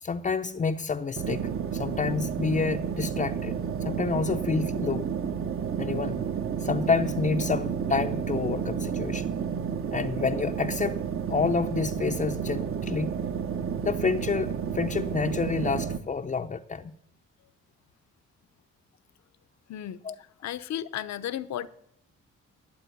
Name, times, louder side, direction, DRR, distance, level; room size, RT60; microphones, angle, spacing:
voice 1, 0.0-5.1 5.8-6.2 6.6-9.3 9.9-11.0 11.3-13.2 13.8-16.9 20.0-20.1, left 5 dB, 25° left, 0.6 m, -29 dB
sound 1, 1.2-16.0, right 7 dB, 45° right, 0.9 m, -31 dB
voice 2, 19.7-21.7, left 11 dB, 65° left, 0.8 m, -34 dB
12.5 x 8.4 x 9.4 m
cardioid pair, 90°, 30 cm